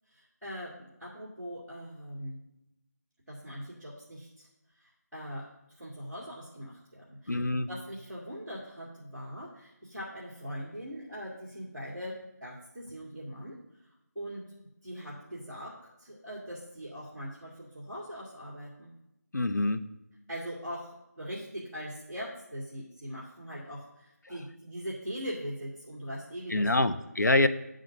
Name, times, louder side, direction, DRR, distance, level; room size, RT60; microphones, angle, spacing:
voice 1, 0.1-2.4 3.3-4.5 4.7-5.5 5.8-13.6 14.1-14.4 14.8-18.9 20.3-26.9, equal, 5° left, -17 dB, 1.1 m, -41 dB
voice 2, 7.3-7.7 19.3-19.8 26.5-27.5, left 2 dB, 80° left, 9 dB, 0.7 m, -25 dB
9.5 x 3.8 x 6.5 m, 0.88 s
figure-of-eight pair, 175°, 9 cm